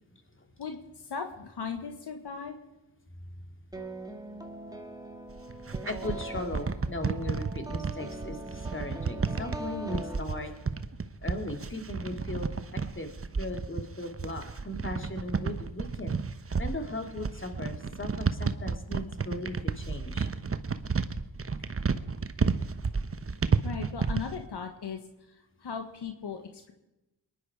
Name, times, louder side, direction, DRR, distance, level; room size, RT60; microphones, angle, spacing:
voice 1, 1.0-2.6 23.6-25.0 25.6-26.7, left 6 dB, 70° left, 5 dB, 1.5 m, -37 dB
sound 1, 3.7-10.8, right 1 dB, 10° right, 2.1 m, -42 dB
sound 2, 5.3-24.4, right 5 dB, 35° right, 1.0 m, -31 dB
voice 2, 5.8-10.5 11.2-12.5 12.9-16.2 16.6-20.3, left 1 dB, 30° left, 5 dB, 2.8 m, -37 dB
22.0 x 11.0 x 4.8 m, 0.95 s
supercardioid pair, 45°, 42 cm